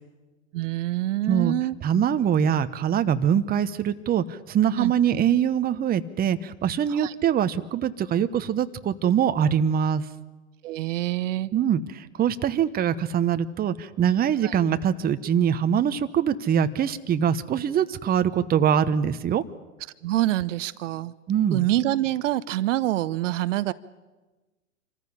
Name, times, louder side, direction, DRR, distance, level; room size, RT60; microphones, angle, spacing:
voice 1, 0.5-1.8 4.8-5.2 6.9-7.1 10.6-11.5 14.4-14.5 20.0-21.1 21.5-23.7, right 15 dB, 65° right, 15 dB, 0.9 m, -26 dB
voice 2, 1.8-10.0 11.5-19.4 21.3-21.7, right 8 dB, 20° right, 11 dB, 0.9 m, -23 dB
26.0 x 15.0 x 10.0 m, 1.2 s
hypercardioid pair, 105°, 41 cm